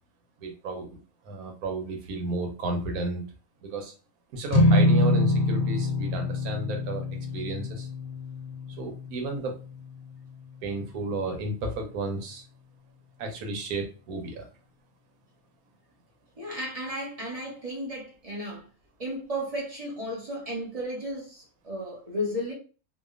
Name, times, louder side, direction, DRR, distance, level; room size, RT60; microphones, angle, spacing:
voice 1, 0.4-1.0 1.2-3.2 3.6-3.9 4.3-7.1 7.3-7.9 8.8-9.6 10.6-12.4 13.2-14.5, right 2 dB, 85° right, 1.2 m, -33 dB
sound 1, 4.5-10.9, left 2 dB, 70° left, 1.1 m, -26 dB
voice 2, 16.4-18.7 19.0-22.5, equal, 30° right, 0.7 m, -34 dB
2.8 x 2.2 x 2.3 m
omnidirectional pair, 1.5 m